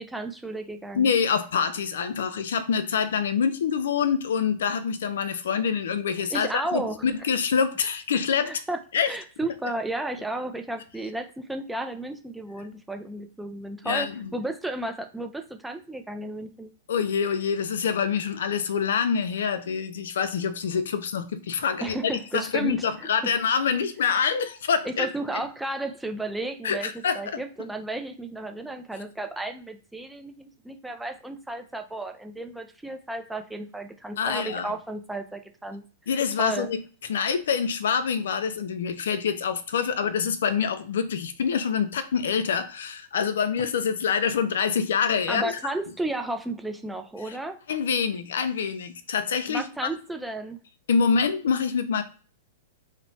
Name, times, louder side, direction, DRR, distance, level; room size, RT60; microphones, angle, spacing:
voice 1, 0.0-1.1 6.3-7.1 8.5-8.8 9.1-16.7 21.8-22.8 24.8-35.8 36.4-36.7 45.3-47.6 49.5-50.6, right 2 dB, 5° right, 6 dB, 0.4 m, -33 dB
voice 2, 0.9-8.6 8.9-9.1 13.8-14.3 16.9-25.1 26.6-27.4 34.2-34.7 36.1-36.8 37.1-45.5 47.3-47.4 47.7-49.6 50.9-52.0, left 6 dB, 75° left, 11 dB, 0.4 m, -26 dB
2.9 x 2.0 x 2.7 m, 0.39 s
hypercardioid pair, 130°, 0 cm